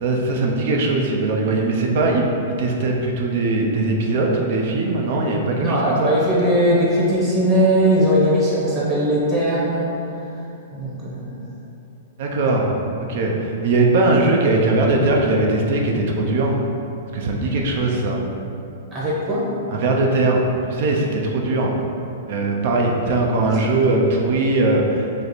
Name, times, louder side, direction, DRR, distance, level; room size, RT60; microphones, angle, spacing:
voice 1, 0.0-2.2 2.6-6.2 12.2-16.6 17.1-18.2 19.7-20.4 20.7-21.7 22.3-25.1, right 2 dB, 60° right, 0 dB, 0.5 m, -20 dB
voice 2, 5.6-10.2 10.7-11.3 18.9-19.5, equal, 25° right, -6 dB, 0.9 m, -19 dB
3.2 x 2.4 x 4.1 m, 2.8 s
hypercardioid pair, 135°, 0 cm